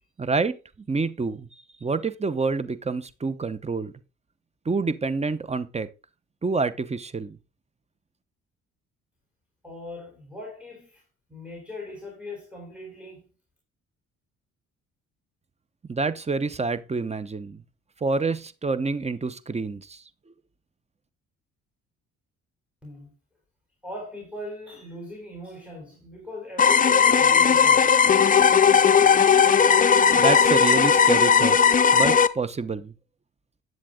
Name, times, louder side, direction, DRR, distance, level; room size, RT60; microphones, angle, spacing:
voice 1, 0.2-0.6 0.9-1.5 1.8-3.9 4.6-5.9 6.4-7.4 15.9-17.6 18.0-20.0 30.1-31.6 31.9-32.9, right 4 dB, 20° right, 0.8 m, -27 dB
voice 2, 9.6-11.0 11.3-13.2 22.8-23.1 23.8-28.0, left 2 dB, 5° right, 3.9 m, -39 dB
sound 1, 26.6-32.3, left 6 dB, 25° left, 0.6 m, -17 dB
10.5 x 7.6 x 3.8 m
cardioid pair, 90°, 30 cm